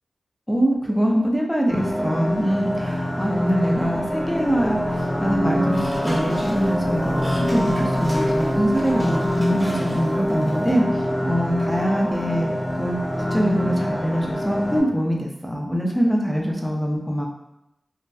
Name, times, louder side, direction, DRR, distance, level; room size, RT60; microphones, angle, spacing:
voice 1, 0.5-10.8 11.2-12.5 12.8-13.0 13.3-17.3, equal, 5° left, -1 dB, 0.5 m, -23 dB
sound 1, 1.7-14.8, equal, 35° left, 1.1 m, -24 dB
sound 2, 5.7-10.7, equal, 10° right, 1.0 m, -37 dB
2.7 x 2.1 x 2.2 m, 0.88 s
wide cardioid pair, 55°, 0 cm